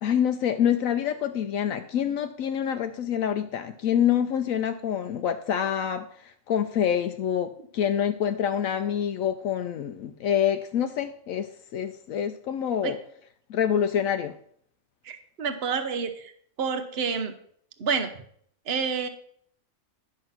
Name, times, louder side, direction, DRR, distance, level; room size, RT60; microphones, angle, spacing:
voice 1, 0.0-13.0 13.5-14.3, left 9 dB, 75° left, 8 dB, 1.0 m, -26 dB
voice 2, 15.0-16.3 16.6-17.3 17.8-18.1 18.7-19.1, right 6 dB, 50° right, 9 dB, 1.1 m, -28 dB
9.9 x 6.3 x 5.8 m, 0.63 s
omnidirectional pair, 1.5 m